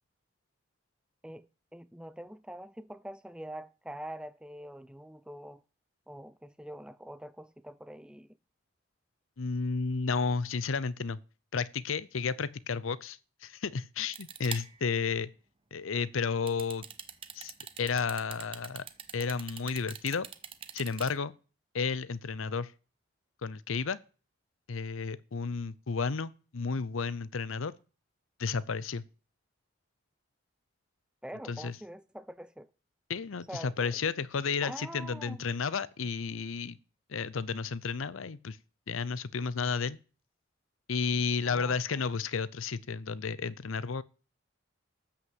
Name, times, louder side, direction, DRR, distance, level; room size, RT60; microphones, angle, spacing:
voice 1, 1.2-5.6 6.1-8.4 31.2-32.7 33.5-34.0 34.6-35.4 41.5-42.1, right 1 dB, 5° right, 0.5 m, -45 dB
voice 2, 9.4-11.2 11.5-15.3 15.7-16.8 17.3-17.5 17.8-18.8 19.1-20.3 20.7-21.3 21.7-22.7 23.4-24.0 24.7-27.7 28.4-29.0 31.5-31.7 33.1-36.8 37.1-38.6 38.9-40.0 40.9-44.0, left 5 dB, 85° left, 0.6 m, -32 dB
sound 1, 14.1-14.9 16.5-21.1, right 8 dB, 25° right, 0.8 m, -42 dB
13.0 x 6.0 x 7.8 m
head